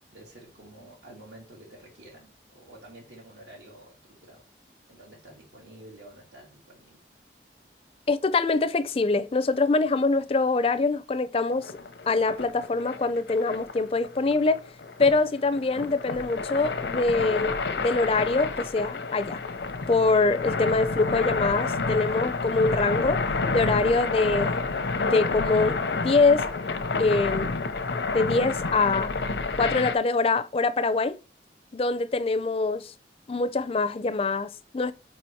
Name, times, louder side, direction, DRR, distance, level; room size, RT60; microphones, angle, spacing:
voice 1, 0.1-4.4 4.9-7.0, right 1 dB, 85° right, 2.4 m, -49 dB
voice 2, 8.1-11.7 12.1-14.6 15.0-19.4 19.9-23.2 23.5-26.4 27.0-27.6 28.1-29.1 29.6-31.2 31.7-32.9 33.3-34.9, left 3 dB, 35° left, 0.4 m, -24 dB
sound 1, 11.6-30.0, left 3 dB, 85° left, 0.7 m, -29 dB
5.0 x 4.2 x 4.5 m
head